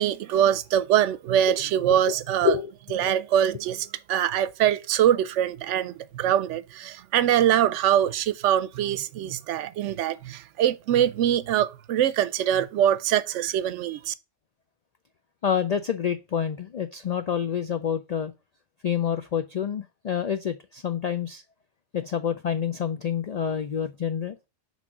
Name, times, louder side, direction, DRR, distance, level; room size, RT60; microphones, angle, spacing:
voice 1, 0.0-2.6 2.9-14.1, right 10 dB, 75° right, 0.9 m, -23 dB
voice 2, 15.4-18.3 18.8-21.4 21.9-24.4, left 8 dB, 75° left, 0.3 m, -27 dB
6.1 x 3.6 x 5.8 m
omnidirectional pair, 1.3 m